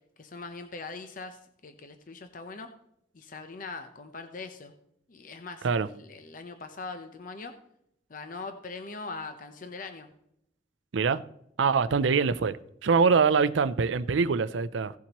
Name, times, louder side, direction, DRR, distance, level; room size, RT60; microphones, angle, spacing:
voice 1, 0.2-2.7 3.1-4.7 5.1-7.6 8.1-10.1 11.9-12.1 13.2-13.3, left 3 dB, 45° left, 0.7 m, -41 dB
voice 2, 11.6-12.6 12.8-14.9, right 5 dB, 80° right, 0.5 m, -24 dB
16.5 x 7.2 x 3.0 m
head